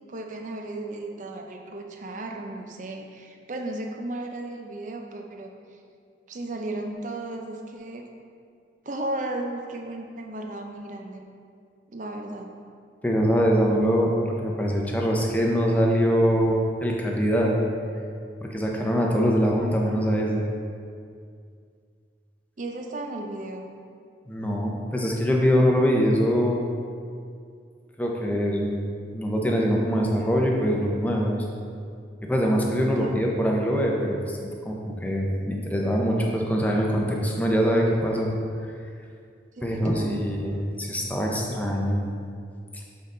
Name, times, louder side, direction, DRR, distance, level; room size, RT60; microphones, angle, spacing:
voice 1, 0.1-5.5 6.3-8.1 8.8-11.2 11.9-12.5 22.6-23.7 32.9-33.2 39.6-40.2, right 2 dB, 45° right, 3 dB, 0.6 m, -35 dB
voice 2, 13.0-17.6 18.4-20.4 24.3-26.6 28.0-28.8 29.1-31.5 32.2-34.4 34.6-38.3 39.6-42.0, equal, 10° left, -1 dB, 0.6 m, -23 dB
7.5 x 3.9 x 3.8 m, 2.3 s
head